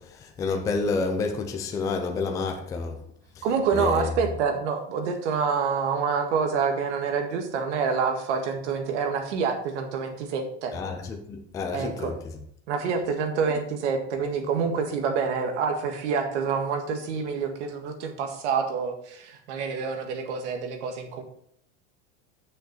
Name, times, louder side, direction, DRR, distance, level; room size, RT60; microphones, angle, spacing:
voice 1, 0.0-3.0 3.4-3.5 3.7-4.1 10.7-12.1, left 4 dB, 10° left, 4 dB, 0.4 m, -29 dB
voice 2, 3.4-10.8 11.7-12.1 12.7-21.2, right 5 dB, 80° right, 5 dB, 1.8 m, -27 dB
8.1 x 6.5 x 4.4 m, 0.68 s
supercardioid pair, 170°, 35 cm